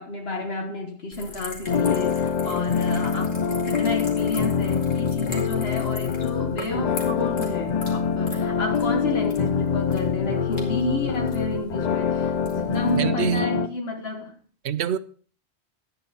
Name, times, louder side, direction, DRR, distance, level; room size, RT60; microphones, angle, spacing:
voice 1, 0.0-14.3, left 2 dB, 65° left, 1.5 m, -30 dB
sound 1, 1.1-13.0, left 2 dB, 80° left, 2.7 m, -41 dB
sound 2, 1.7-13.7, left 7 dB, 50° left, 0.6 m, -25 dB
voice 2, 13.0-13.6 14.6-15.0, right 8 dB, 75° right, 0.9 m, -26 dB
11.5 x 9.0 x 4.2 m
omnidirectional pair, 1.1 m